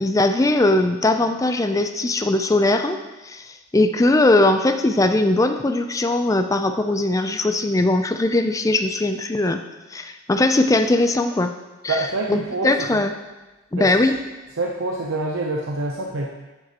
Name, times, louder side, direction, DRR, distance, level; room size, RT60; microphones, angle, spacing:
voice 1, 0.0-3.0 3.2-9.6 9.9-11.5 11.8-13.1 13.7-14.2, left 2 dB, 15° left, 6 dB, 0.4 m, -20 dB
voice 2, 11.9-13.0 13.7-13.9 14.6-16.3, right 2 dB, 75° right, 0 dB, 0.7 m, -26 dB
9.1 x 8.9 x 2.9 m, 1.1 s
head